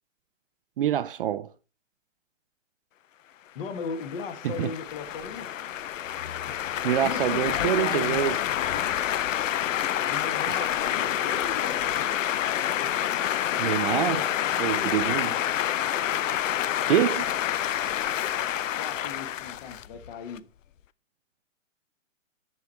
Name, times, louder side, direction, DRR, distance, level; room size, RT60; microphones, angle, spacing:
voice 1, 0.8-1.5 4.4-4.7 6.8-8.4 13.6-14.2 14.6-15.3 16.8-17.3, right 11 dB, 45° right, 0.4 m, -25 dB
voice 2, 3.5-5.8 7.0-8.9 10.1-11.9 13.5-13.6 13.9-14.9 18.8-20.5, left 5 dB, 45° left, 1.5 m, -37 dB
sound 1, 3.7-20.4, left 11 dB, 75° left, 0.6 m, -28 dB
7.2 x 6.4 x 4.2 m
hypercardioid pair, 145°, 39 cm